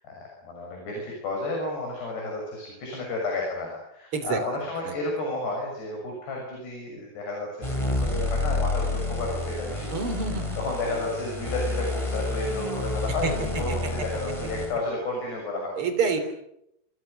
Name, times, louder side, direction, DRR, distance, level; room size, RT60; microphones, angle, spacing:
voice 1, 0.0-10.1 10.6-15.7, left 2 dB, 75° left, 0 dB, 8.8 m, -32 dB
sound 1, 7.6-14.8, left 2 dB, 5° left, 4.1 m, -29 dB
voice 2, 9.9-10.6 13.2-13.3 13.7-13.8 15.7-16.2, right 5 dB, 35° right, 8 dB, 4.1 m, -27 dB
28.0 x 27.0 x 6.7 m, 0.79 s
omnidirectional pair, 4.8 m